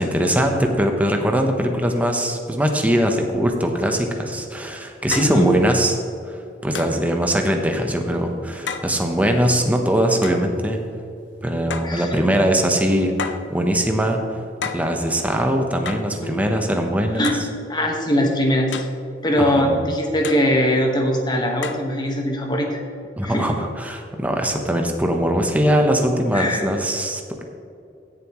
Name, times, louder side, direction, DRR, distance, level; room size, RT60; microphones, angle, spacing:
voice 1, 0.0-6.0 6.3-10.8 11.4-14.4 14.7-17.3 19.4-19.9 23.2-27.4, equal, 10° right, 3 dB, 0.9 m, -21 dB
sound 1, 4.3-4.4 5.1-5.4 6.8-7.0 8.7-8.9 10.2-10.5 11.7-12.0 13.2-13.5 14.6-14.9 15.9-16.1 17.2-17.5 18.7-19.0 20.2-20.5 21.6-21.9, left 6 dB, 75° left, 0.6 m, -31 dB
voice 2, 5.1-5.5 11.8-12.2 16.2-16.3 17.2-17.4 17.7-18.7 19.2-22.8 23.2-23.4 26.3-26.6, equal, 25° left, 1 dB, 1.4 m, -21 dB
16.0 x 7.2 x 3.1 m, 2.6 s
head